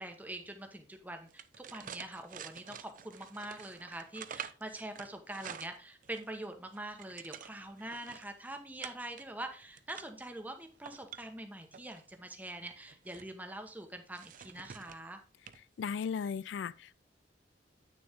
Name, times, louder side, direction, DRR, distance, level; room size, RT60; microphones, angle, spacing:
voice 1, 0.0-15.2, right 1 dB, 10° right, 1.1 m, -44 dB
sound 1, 1.3-6.3 6.7-8.3 8.8-9.2 9.6-10.2 10.7-12.0 12.7-13.3 14.2-15.1 15.5-15.6 15.9-16.1, right 8 dB, 45° right, 0.5 m, -48 dB
voice 2, 15.8-17.0, left 6 dB, 85° left, 0.4 m, -36 dB
8.9 x 6.5 x 3.6 m
head